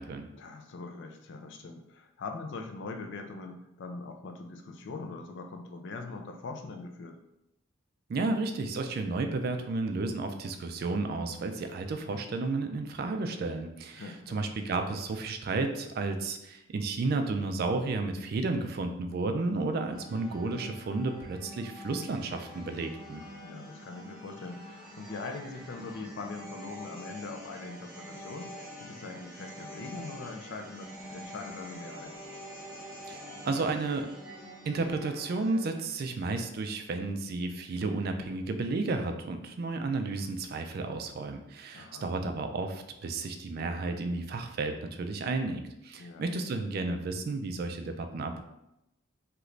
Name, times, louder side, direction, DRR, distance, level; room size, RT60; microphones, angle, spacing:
voice 1, 0.4-7.2 13.9-14.4 23.4-32.2 41.7-42.1 46.0-46.3, left 3 dB, 60° left, 5 dB, 0.4 m, -42 dB
voice 2, 8.1-23.2 33.1-34.1 34.7-48.4, right 3 dB, 50° right, 6 dB, 0.3 m, -32 dB
sound 1, 19.9-35.8, equal, 5° right, 0.6 m, -46 dB
2.9 x 2.5 x 3.2 m, 0.87 s
head